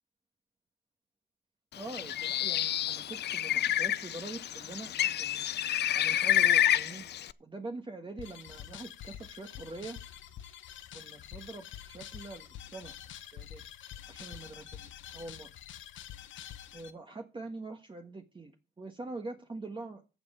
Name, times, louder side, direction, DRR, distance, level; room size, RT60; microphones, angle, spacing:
voice 1, 1.7-5.5 5.9-7.1 7.4-10.0 10.9-12.9 13.3-13.6 14.1-15.5 16.7-20.0, right 3 dB, 25° right, 4 dB, 1.4 m, -44 dB
Bird, 1.8-7.3, left 11 dB, 60° left, 0.5 m, -29 dB
sound 1, 8.2-16.9, left 10 dB, 75° left, 1.2 m, -47 dB
14.5 x 7.1 x 5.5 m, 0.33 s
cardioid pair, 90°, 20 cm